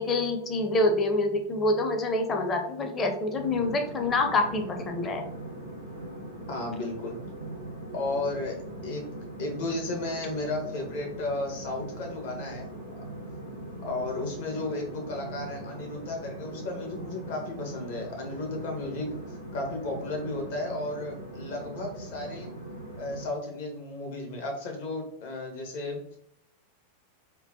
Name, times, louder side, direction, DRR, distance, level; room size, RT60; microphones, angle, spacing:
voice 1, 0.0-5.2, left 2 dB, 25° left, 4 dB, 0.6 m, -26 dB
sound 1, 3.3-23.3, right 1 dB, 90° left, 0.7 m, -40 dB
voice 2, 6.5-7.2 7.9-8.6 8.8-12.7 13.8-22.5 23.0-26.2, left 2 dB, 50° left, 1 dB, 0.8 m, -34 dB
3.7 x 2.1 x 2.6 m, 0.72 s
figure-of-eight pair, 90°, 0 cm